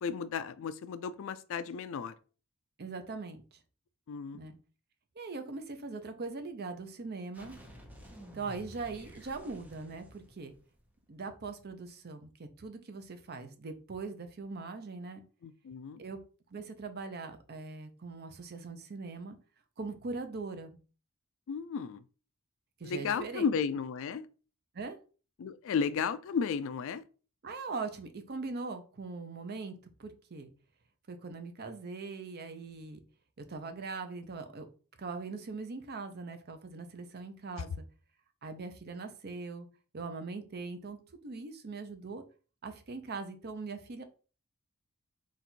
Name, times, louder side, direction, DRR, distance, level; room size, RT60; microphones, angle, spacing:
voice 1, 0.0-2.1 4.1-4.4 15.4-16.0 21.5-22.0 22.8-24.3 25.4-27.0, left 6 dB, 60° left, 0.3 m, -34 dB
voice 2, 2.8-3.6 4.3-4.6 5.2-7.6 8.3-10.5 11.1-15.2 16.0-16.2 16.5-19.4 19.8-20.8 22.8-23.4 24.7-25.0 27.4-30.5 31.1-33.0 33.4-34.7 35.0-37.8 38.4-39.7 39.9-42.2 42.6-44.0, right 4 dB, 45° right, 0.6 m, -41 dB
sound 1, 7.3-11.0, equal, 5° right, 0.8 m, -52 dB
4.0 x 2.5 x 4.4 m
head